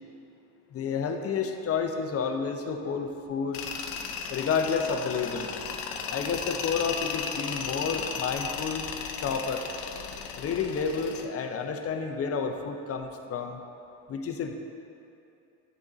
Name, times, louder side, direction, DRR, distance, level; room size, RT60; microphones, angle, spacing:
voice 1, 0.7-3.6 4.3-5.5 6.1-8.9 9.2-9.7 10.4-13.6 14.1-14.6, left 5 dB, 35° left, 5 dB, 0.6 m, -30 dB
Tools, 3.5-11.3, left 6 dB, 80° left, 0.7 m, -35 dB
9.0 x 3.6 x 3.9 m, 2.7 s
supercardioid pair, 85°, 41 cm